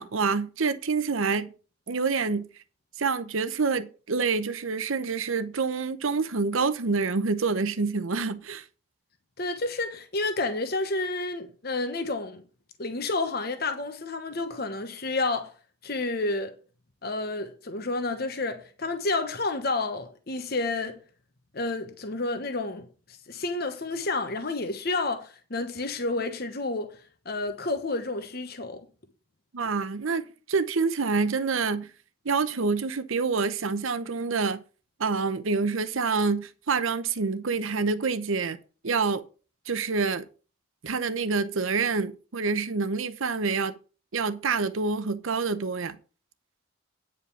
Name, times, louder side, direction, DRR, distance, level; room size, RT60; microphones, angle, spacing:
voice 1, 0.0-1.5 1.9-2.5 3.0-8.6 29.5-31.9 32.2-34.6 35.0-38.6 38.8-39.2 39.7-40.3 40.8-43.7 44.1-46.0, right 4 dB, 70° right, 0.8 m, -27 dB
voice 2, 9.4-12.4 12.8-15.5 15.8-16.5 17.0-21.0 21.5-22.9 23.3-27.0 27.2-28.8, left 3 dB, 45° left, 1.1 m, -30 dB
9.4 x 5.1 x 6.9 m
head